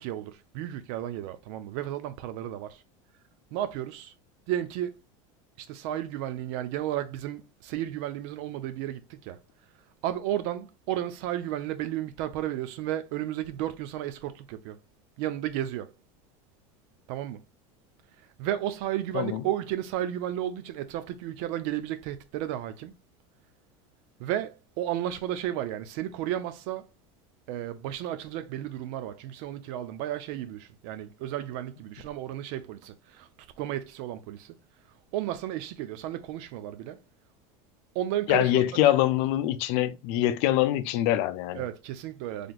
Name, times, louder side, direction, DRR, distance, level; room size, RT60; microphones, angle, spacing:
voice 1, 0.0-2.8 3.5-4.1 4.5-5.0 5.6-9.4 10.0-14.8 15.2-15.9 17.1-17.4 18.4-22.9 24.2-26.9 27.5-33.3 33.6-34.6 35.1-37.0 37.9-38.8 41.6-42.5, right 12 dB, 65° right, 0.6 m, -33 dB
voice 2, 19.1-19.4 38.3-41.6, left 13 dB, 65° left, 0.5 m, -24 dB
3.9 x 3.3 x 2.3 m
supercardioid pair, 120°, 17 cm